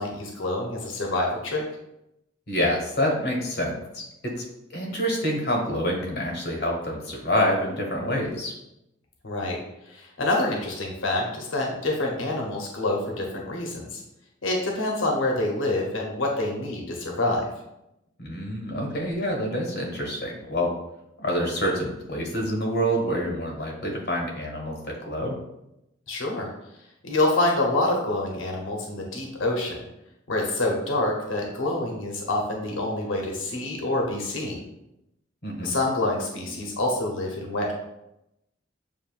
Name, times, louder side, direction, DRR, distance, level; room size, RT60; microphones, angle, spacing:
voice 1, 0.0-1.6 9.2-9.6 9.9-14.0 14.4-17.5 26.1-26.5 27.0-29.8 30.3-34.6 35.6-37.7, left 2 dB, 85° left, 0 dB, 0.8 m, -27 dB
voice 2, 2.5-4.4 4.7-8.5 18.2-20.7 21.2-25.4 35.4-35.7, equal, 55° left, -1 dB, 1.4 m, -27 dB
7.1 x 2.6 x 2.4 m, 0.87 s
head